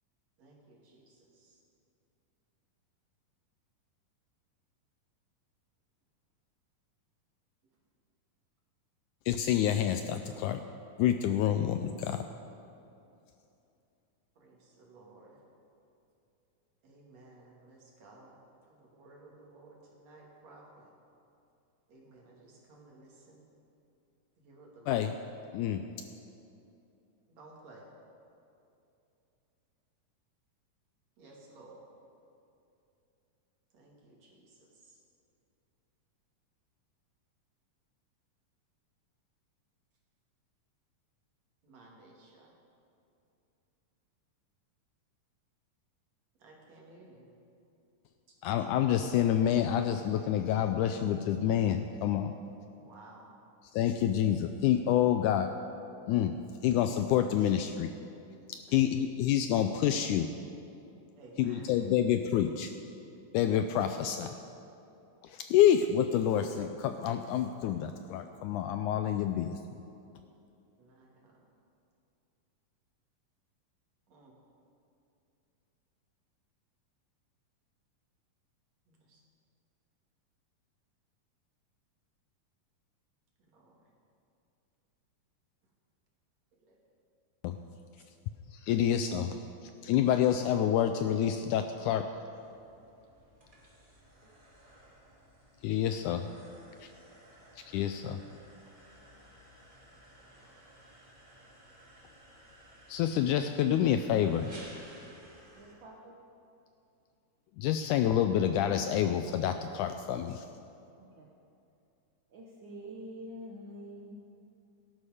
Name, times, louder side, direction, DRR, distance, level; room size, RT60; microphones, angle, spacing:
voice 1, 0.4-1.6 14.4-15.4 16.8-18.4 18.7-20.9 21.9-23.4 24.4-25.1 27.3-27.9 31.2-31.8 33.7-35.0 41.6-42.5 46.4-47.3 52.7-53.3 58.7-58.8 61.2-61.7 70.8-71.4 74.1-74.3 78.9-79.2 83.4-83.9 86.6-86.8 88.0-88.1 99.8-99.9 100.2-100.5, right 2 dB, 55° right, -2 dB, 3.2 m, -56 dB
voice 2, 9.3-10.7 11.0-12.2 24.9-25.2 25.5-25.8 48.4-52.3 53.7-55.5 56.1-56.3 56.6-57.9 58.5-60.3 61.4-62.7 63.3-64.4 65.2-69.6 87.4-87.6 88.5-89.4 89.8-92.1 95.6-96.3 96.8-96.9 97.7-98.2 102.9-104.5 107.6-110.5, left 10 dB, 80° left, 8 dB, 1.8 m, -28 dB
sound 1, 92.3-105.7, right 1 dB, 15° right, 2.2 m, -56 dB
voice 3, 105.5-106.2 111.0-111.3 112.3-114.2, equal, 80° right, -2 dB, 1.0 m, -46 dB
17.5 x 11.5 x 4.9 m, 2.7 s
omnidirectional pair, 3.9 m